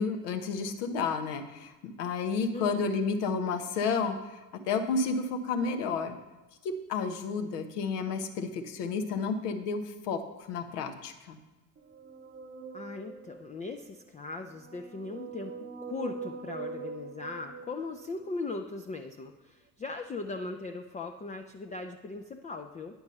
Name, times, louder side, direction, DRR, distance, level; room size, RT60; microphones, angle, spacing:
voice 1, 0.0-4.4 4.7-6.2 6.6-11.4, left 4 dB, 70° left, 7 dB, 1.2 m, -31 dB
sound 1, 11.9-13.6 14.4-18.3, right 5 dB, 20° right, 0.9 m, -43 dB
voice 2, 12.7-22.9, left 3 dB, 15° left, 4 dB, 0.5 m, -39 dB
9.5 x 6.0 x 5.5 m, 1.1 s
figure-of-eight pair, 65°, 49 cm